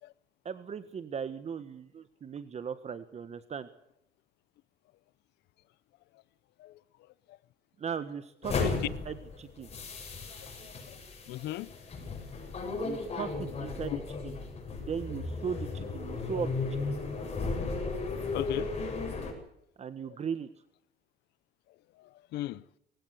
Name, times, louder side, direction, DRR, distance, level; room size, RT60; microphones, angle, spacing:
voice 1, 0.4-3.7 7.8-9.7 12.8-14.3 14.8-16.8 19.8-20.5, right 7 dB, 40° right, 1.5 m, -38 dB
sound 1, 8.4-19.3, left 3 dB, 35° left, 7.8 m, -35 dB
voice 2, 11.3-11.7 12.4-12.5 13.9-14.0 18.3-18.7 20.1-20.2 22.0-22.6, left 16 dB, 80° left, 0.8 m, -36 dB
22.0 x 16.5 x 8.3 m
cardioid pair, 110°, 17 cm